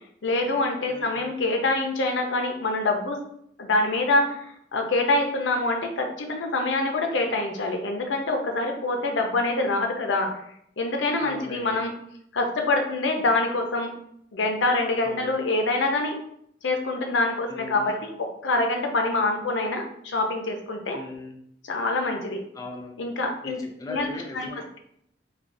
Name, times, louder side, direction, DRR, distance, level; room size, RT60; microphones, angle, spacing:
voice 1, 0.2-3.2 3.6-10.4 10.8-11.9 12.3-13.9 14.3-16.1 16.6-21.0 21.6-22.4 23.0-23.6 23.9-24.5, left 2 dB, 85° left, 3 dB, 0.6 m, -25 dB
voice 2, 0.9-1.3 11.2-11.8 15.0-15.4 17.5-18.0 20.9-21.4 22.5-22.9 23.4-24.6, left 2 dB, 20° left, 2 dB, 0.4 m, -39 dB
3.3 x 2.3 x 2.5 m, 0.72 s
head